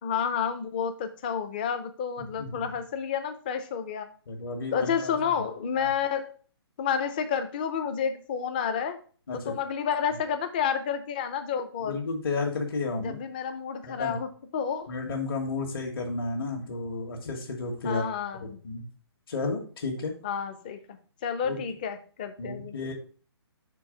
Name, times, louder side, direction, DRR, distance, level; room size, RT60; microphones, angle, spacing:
voice 1, 0.0-4.1 4.7-6.3 6.8-9.0 9.3-12.0 13.0-14.9 17.8-18.6 20.2-22.7, left 7 dB, 20° left, 8 dB, 0.5 m, -30 dB
voice 2, 2.4-2.7 4.3-5.4 5.8-5.9 9.3-9.5 11.8-13.2 13.8-14.2 14.9-18.0 18.4-18.9 19.3-20.1 21.4-21.6 22.4-22.9, left 3 dB, 50° left, 0 dB, 1.5 m, -32 dB
5.4 x 4.5 x 5.0 m, 0.41 s
hypercardioid pair, 165°, 14 cm